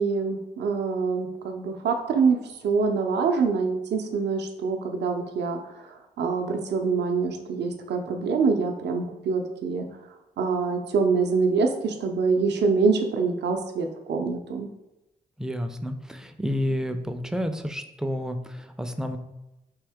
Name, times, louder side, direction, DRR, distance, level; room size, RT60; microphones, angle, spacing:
voice 1, 0.0-9.9 10.4-14.7, right 4 dB, 70° right, 4 dB, 0.5 m, -25 dB
voice 2, 15.4-19.2, equal, 5° right, 7 dB, 0.3 m, -30 dB
3.5 x 2.7 x 3.4 m, 0.98 s
cardioid pair, 65°, 18 cm